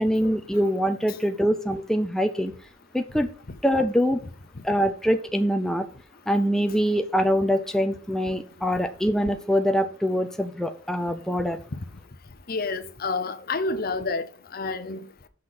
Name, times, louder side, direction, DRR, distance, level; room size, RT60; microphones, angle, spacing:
voice 1, 0.0-2.5 2.9-3.3 3.6-4.2 4.6-5.8 6.3-11.6, equal, 5° left, 0.5 m, -24 dB
voice 2, 12.5-15.0, left 3 dB, 50° left, 0.7 m, -29 dB
6.6 x 5.9 x 5.9 m
head